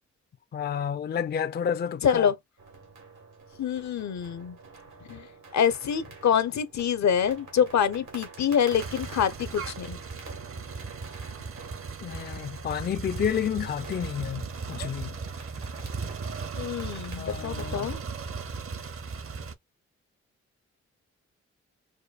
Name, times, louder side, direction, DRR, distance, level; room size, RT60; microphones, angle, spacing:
voice 1, 0.5-2.3 12.0-15.1 17.2-17.9, left 8 dB, 35° left, 0.4 m, -30 dB
voice 2, 2.0-2.3 3.6-4.6 5.1-5.3 5.5-10.0 16.5-18.0, left 8 dB, 65° left, 0.7 m, -26 dB
sound 1, 2.6-18.0, right 4 dB, 85° right, 1.9 m, -48 dB
sound 2, 8.7-19.5, right 5 dB, 50° right, 0.7 m, -37 dB
5.0 x 2.2 x 2.3 m
supercardioid pair, 45°, 30 cm